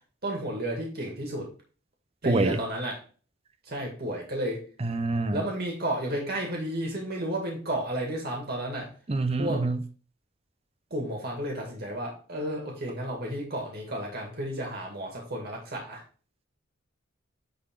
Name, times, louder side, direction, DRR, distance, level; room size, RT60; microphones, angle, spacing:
voice 1, 0.2-1.5 2.2-3.0 3.7-4.6 5.3-8.9 9.4-9.6 10.9-16.0, right 1 dB, 50° right, 2.2 m, -32 dB
voice 2, 2.3-2.6 4.8-5.4 9.1-9.8, right 2 dB, 30° right, 0.6 m, -26 dB
9.7 x 4.0 x 3.7 m
head